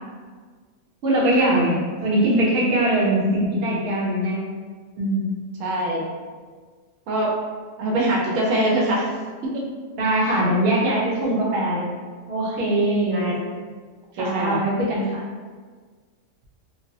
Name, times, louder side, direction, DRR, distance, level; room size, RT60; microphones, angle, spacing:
voice 1, 1.0-4.4 5.0-5.3 10.0-11.9 12.3-13.2 14.2-15.2, right 1 dB, 60° right, -6 dB, 0.9 m, -21 dB
voice 2, 5.6-6.0 7.1-7.3 7.8-9.0 9.4-9.7 13.1-13.4 14.2-14.7, right 1 dB, 90° right, -3 dB, 1.0 m, -23 dB
3.2 x 2.0 x 2.6 m, 1.5 s
omnidirectional pair, 1.3 m